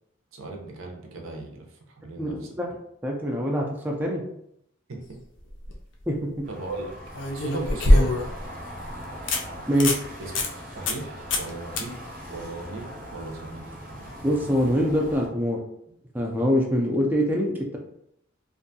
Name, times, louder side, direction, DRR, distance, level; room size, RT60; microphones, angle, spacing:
voice 1, 0.3-2.5 4.9-5.0 6.5-6.9 7.3-8.1 10.2-10.3 10.7-11.9 12.3-12.9 13.1-13.7, right 2 dB, 75° right, 1 dB, 0.6 m, -37 dB
voice 2, 2.2-2.8 3.0-4.2 6.1-6.4 9.7-10.0 14.2-15.6 16.1-17.8, equal, 10° right, -1 dB, 0.3 m, -24 dB
sound 1, 5.4-5.7 7.1-8.4 8.9-9.0 9.3-9.4 9.7-10.0 10.4-10.5 10.9-11.0 11.3-11.5 11.8-11.9 15.0-15.1, left 1 dB, 60° left, 0.5 m, -22 dB
sound 2, 6.4-15.3, equal, 40° right, 0.6 m, -40 dB
2.6 x 2.2 x 2.6 m, 0.74 s
head